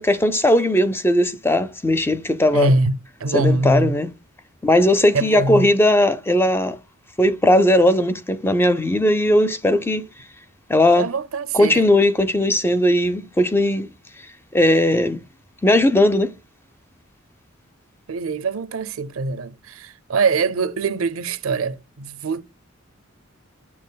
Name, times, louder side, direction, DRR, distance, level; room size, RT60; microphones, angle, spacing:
voice 1, 0.0-2.7 3.3-4.1 4.6-6.8 7.2-10.0 10.7-11.1 11.5-13.9 14.5-15.2 15.6-16.3, left 1 dB, 10° left, 0.4 m, -18 dB
voice 2, 2.5-3.9 5.1-5.7 11.0-11.9 18.1-22.4, right 3 dB, 85° right, 0.6 m, -23 dB
8.5 x 7.2 x 2.2 m
head